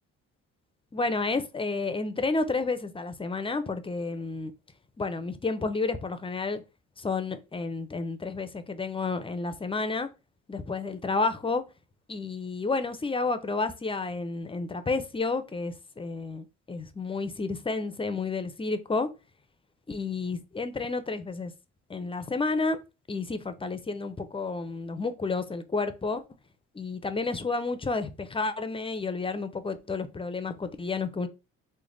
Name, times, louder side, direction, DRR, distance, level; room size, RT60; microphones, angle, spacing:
voice 1, 0.9-4.5 5.0-6.6 7.0-10.1 10.5-11.6 12.1-19.1 19.9-21.5 21.9-22.8 23.1-26.2 26.7-31.3, left 3 dB, 20° left, 0.4 m, -31 dB
3.3 x 2.1 x 3.7 m
cardioid pair, 90°, 30 cm